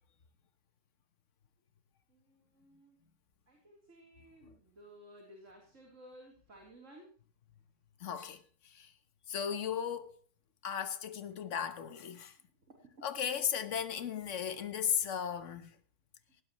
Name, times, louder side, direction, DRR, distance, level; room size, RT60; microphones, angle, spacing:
voice 1, 2.1-3.0 3.5-7.1 12.7-13.3, right 1 dB, 70° right, 3.9 m, -57 dB
voice 2, 8.0-8.9 9.3-10.1 10.6-12.3 13.0-15.7, left 8 dB, 70° left, 1.5 m, -36 dB
19.0 x 17.5 x 3.1 m
omnidirectional pair, 1.3 m